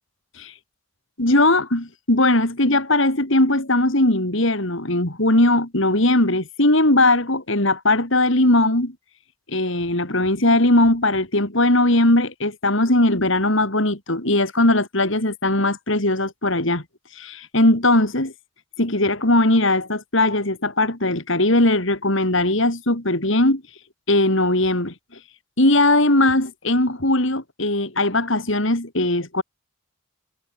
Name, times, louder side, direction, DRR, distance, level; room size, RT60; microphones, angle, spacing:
voice 1, 1.2-8.9 9.5-16.8 17.1-18.3 18.8-23.6 24.1-24.9 25.6-29.4, left 1 dB, 60° left, 3.8 m, -19 dB
head